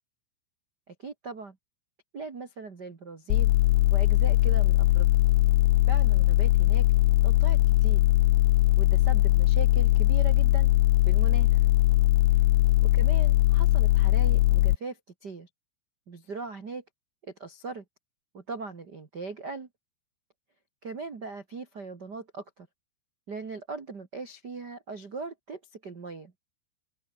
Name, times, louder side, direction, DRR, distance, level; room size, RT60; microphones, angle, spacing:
voice 1, 0.9-1.6 2.1-3.5 3.9-5.1 5.9-6.8 7.2-8.0 8.8-10.7 11.0-11.7 12.9-15.5 16.1-16.8 17.2-17.8 18.3-19.7 20.8-22.7 23.3-26.3, right 4 dB, 65° right, 1.0 m, -39 dB
sound 1, 3.3-14.8, left 16 dB, 80° left, 2.3 m, -21 dB
open air
omnidirectional pair, 5.7 m